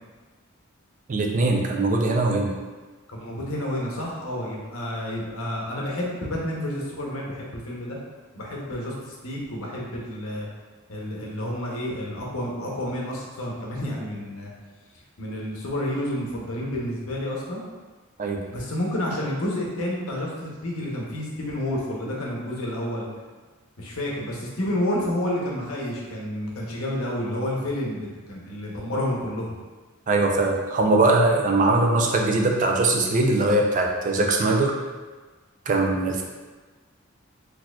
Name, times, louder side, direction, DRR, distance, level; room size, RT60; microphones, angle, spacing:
voice 1, 1.1-2.5 18.2-18.4 30.1-34.8 35.7-36.2, right 2 dB, 40° right, 1 dB, 0.4 m, -21 dB
voice 2, 3.1-8.0 8.3-10.5 10.9-14.5 15.2-17.6 18.5-23.1 23.8-29.5, left 1 dB, 90° left, -3 dB, 0.8 m, -30 dB
4.1 x 2.8 x 2.3 m, 1.3 s
head